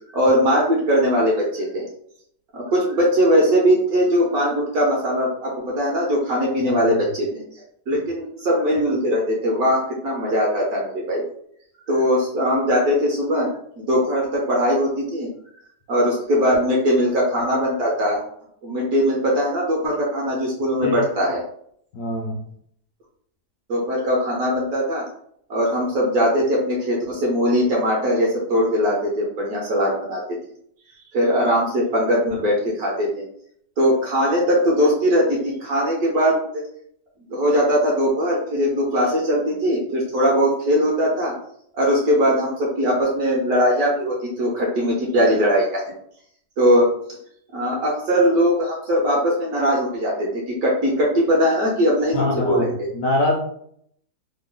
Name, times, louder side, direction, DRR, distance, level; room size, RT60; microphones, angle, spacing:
voice 1, 0.1-1.9 2.5-7.3 7.9-11.2 11.9-13.5 13.8-15.3 15.9-18.2 18.6-21.4 23.7-25.0 25.5-30.2 31.1-33.1 33.8-36.6 37.3-41.3 41.7-45.8 46.6-46.8 47.5-52.7, equal, 65° right, -3 dB, 1.2 m, -20 dB
voice 2, 6.6-7.0 20.8-21.1 21.9-22.4 52.1-53.4, left 2 dB, 70° left, 0 dB, 0.8 m, -24 dB
3.2 x 2.0 x 3.6 m, 0.67 s
omnidirectional pair, 1.9 m